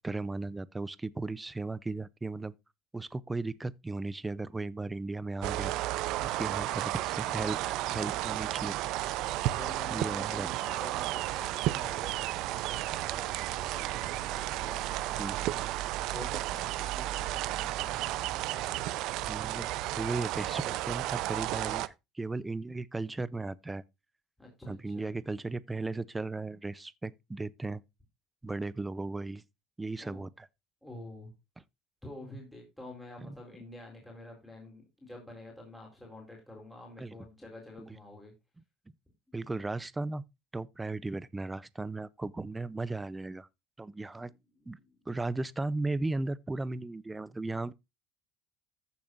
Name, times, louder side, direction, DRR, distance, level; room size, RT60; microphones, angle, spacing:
voice 1, 0.0-2.5 2.9-5.7 6.2-8.7 9.9-10.5 15.2-15.4 19.2-19.7 20.0-23.8 24.7-27.8 28.4-29.4 29.8-30.5 37.0-37.1 37.8-38.0 39.3-40.2 40.5-43.5 43.8-44.3 44.7-44.8 45.1-47.7, right 2 dB, 10° right, 0.6 m, -36 dB
sound 1, 5.4-21.9, right 16 dB, 65° right, 0.6 m, -33 dB
voice 2, 6.3-6.8 9.5-15.7 16.1-18.9 24.4-25.1 30.0-30.3 30.8-31.3 32.0-38.3 44.2-45.0, left 1 dB, 5° left, 4.2 m, -48 dB
14.5 x 7.1 x 2.6 m
cardioid pair, 130°, 0 cm